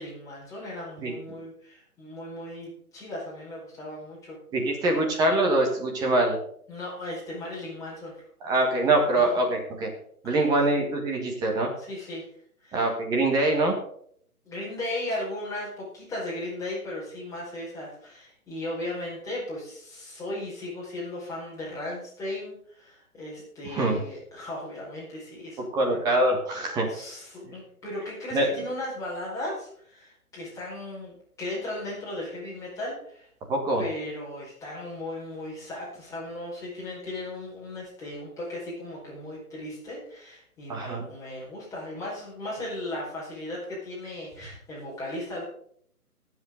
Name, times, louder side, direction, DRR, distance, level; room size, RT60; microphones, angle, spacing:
voice 1, 0.0-4.4 6.7-8.1 9.2-9.3 10.2-10.4 11.8-12.3 12.6-12.9 14.4-26.0 26.8-33.3 33.8-45.4, left 1 dB, 5° left, -7 dB, 4.8 m, -36 dB
voice 2, 1.0-1.4 4.5-6.4 8.4-9.9 10.2-11.7 12.7-13.7 23.7-24.0 25.7-26.9 28.3-28.5 33.5-33.8 40.7-41.0, right 2 dB, 10° right, 1 dB, 1.5 m, -24 dB
19.5 x 7.7 x 3.9 m, 0.64 s
figure-of-eight pair, 145°, 45 cm